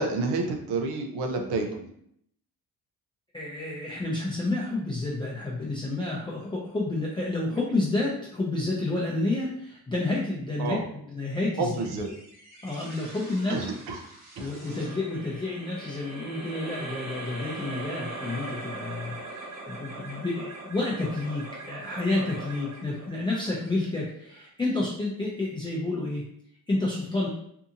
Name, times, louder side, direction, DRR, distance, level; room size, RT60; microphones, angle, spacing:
voice 1, 0.0-1.9 10.6-10.8 11.6-12.1 13.5-14.0 14.4-14.5, right 3 dB, 90° right, 4 dB, 0.6 m, -29 dB
voice 2, 3.3-10.8 11.1-11.7 12.6-13.6 14.4-26.2 26.7-27.3, left 2 dB, 15° left, -6 dB, 0.5 m, -30 dB
sound 1, 11.7-24.3, right 2 dB, 45° right, 1.1 m, -41 dB
2.7 x 2.6 x 2.4 m, 0.69 s
cardioid pair, 90°, 38 cm